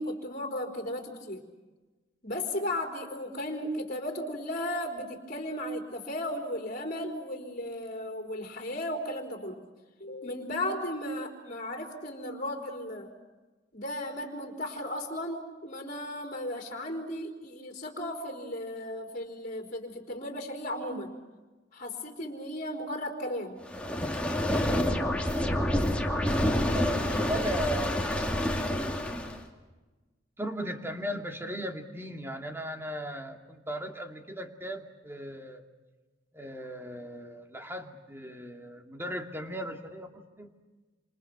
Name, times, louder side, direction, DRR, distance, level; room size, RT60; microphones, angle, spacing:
voice 1, 0.0-1.4 2.2-9.6 10.0-13.1 13.7-21.1 21.7-23.6, left 1 dB, 45° left, 2 dB, 4.1 m, -35 dB
sound 1, 23.7-29.4, left 1 dB, 5° left, 2.5 m, -28 dB
voice 2, 26.4-29.4 30.4-35.6 36.3-40.5, equal, 15° right, 4 dB, 2.5 m, -37 dB
28.0 x 28.0 x 6.1 m, 1.2 s
head